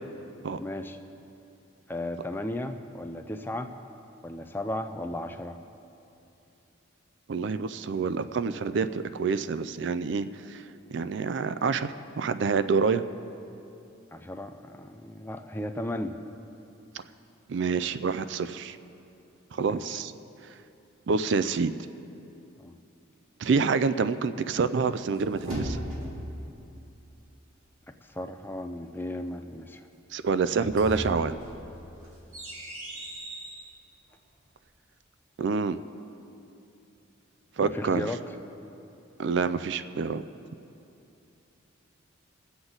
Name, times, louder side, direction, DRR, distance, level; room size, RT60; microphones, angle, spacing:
voice 1, 0.6-1.0 1.9-3.7 4.2-5.6 14.1-16.2 19.7-19.8 22.6-22.8 28.1-29.8 37.6-38.2, left 1 dB, 10° left, 7 dB, 0.4 m, -35 dB
voice 2, 7.3-10.6 10.9-13.0 16.9-17.0 17.5-18.8 19.5-20.1 21.1-21.7 23.4-25.8 30.1-31.4 35.4-35.8 37.6-38.1 39.2-40.2, right 5 dB, 55° right, 12 dB, 0.4 m, -27 dB
sound 1, 24.8-26.3 30.4-33.7, equal, 85° right, 2.4 m, -37 dB
22.5 x 8.0 x 3.9 m, 2.8 s
head